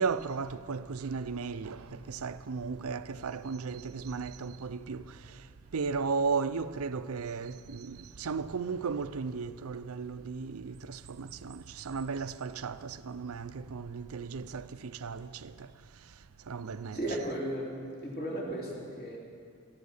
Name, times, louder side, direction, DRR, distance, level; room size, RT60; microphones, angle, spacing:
voice 1, 0.0-5.5 5.7-15.7 16.5-17.0, right 5 dB, 80° right, 0.6 m, -35 dB
voice 2, 16.9-17.7 18.0-19.2, right 1 dB, 45° left, 3.1 m, -35 dB
18.0 x 14.5 x 5.5 m
head